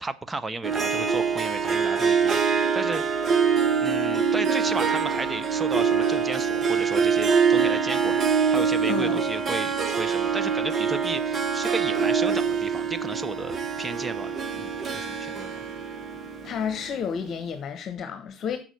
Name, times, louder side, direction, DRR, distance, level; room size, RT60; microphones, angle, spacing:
voice 1, 0.0-3.0 3.8-8.2 8.5-15.6, right 2 dB, 20° right, 0.6 m, -34 dB
Harp, 0.6-17.1, right 6 dB, 35° right, 1.0 m, -24 dB
voice 2, 8.9-9.3 16.4-18.6, left 7 dB, 45° left, 1.0 m, -31 dB
7.2 x 6.1 x 5.2 m
hypercardioid pair, 70°, 0 cm